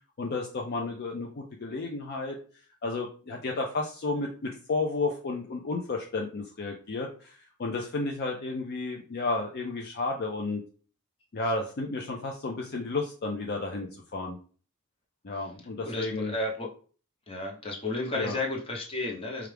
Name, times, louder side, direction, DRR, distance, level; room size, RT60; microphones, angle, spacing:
voice 1, 0.2-2.4 2.8-10.6 11.3-14.4 15.2-16.3 18.1-18.4, left 3 dB, 50° left, 2 dB, 0.5 m, -32 dB
voice 2, 15.8-16.7 17.3-19.5, left 2 dB, 25° left, -1 dB, 0.9 m, -32 dB
4.5 x 2.4 x 3.4 m, 0.40 s
head